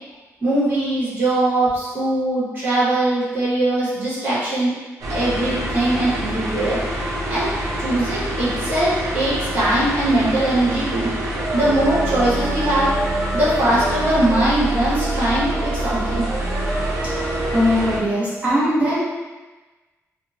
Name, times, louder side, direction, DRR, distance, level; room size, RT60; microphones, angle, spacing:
voice 1, 0.4-4.7 5.1-6.8 7.3-7.5 7.8-11.1 11.5-12.9 13.3-16.2, right 1 dB, 40° right, -11 dB, 1.3 m, -21 dB
sound 1, 5.0-18.0, right 1 dB, 80° right, 0.5 m, -25 dB
voice 2, 17.5-19.0, equal, 25° right, -8 dB, 0.9 m, -19 dB
2.8 x 2.1 x 2.5 m, 1.2 s
wide cardioid pair, 125°, 6 cm